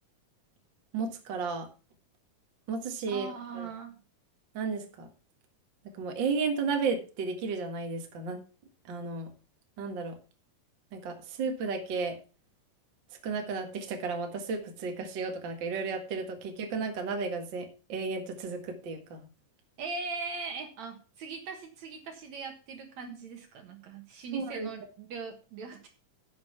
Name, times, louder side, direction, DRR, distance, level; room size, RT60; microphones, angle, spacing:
voice 1, 0.9-1.7 2.7-3.3 3.5-3.7 4.5-5.1 6.0-8.4 8.9-9.3 9.8-10.2 10.9-12.2 13.2-19.3 24.3-24.7, right 4 dB, 40° right, 4 dB, 2.1 m, -33 dB
voice 2, 3.1-4.0 19.8-25.9, right 4 dB, 65° right, 5 dB, 2.6 m, -40 dB
10.5 x 7.6 x 5.8 m, 0.34 s
omnidirectional pair, 3.8 m